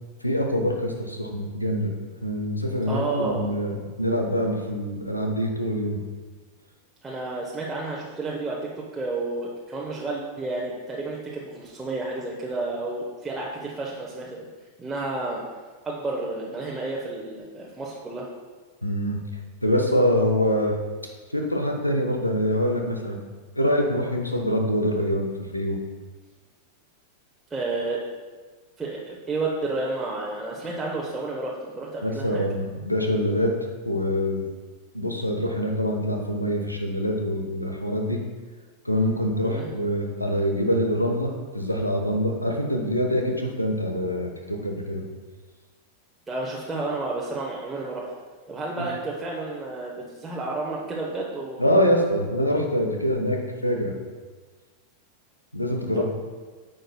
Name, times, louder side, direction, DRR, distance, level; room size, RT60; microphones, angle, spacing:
voice 1, 0.2-1.9 2.2-6.0 18.8-19.2 19.6-20.8 21.3-23.2 23.5-25.8 32.0-33.5 33.8-34.5 34.9-38.2 38.8-45.0 48.8-48.9 51.6-53.9 55.5-56.0, equal, 85° left, 2 dB, 0.9 m, -25 dB
voice 2, 2.9-3.5 7.0-8.6 8.9-14.5 14.8-15.4 15.8-18.3 27.5-28.0 28.8-32.4 39.4-39.7 46.3-48.1 48.5-51.7 56.0-56.1, right 2 dB, 10° right, -4 dB, 1.0 m, -31 dB
10.0 x 6.5 x 2.3 m, 1.4 s
figure-of-eight pair, 90°, 0 cm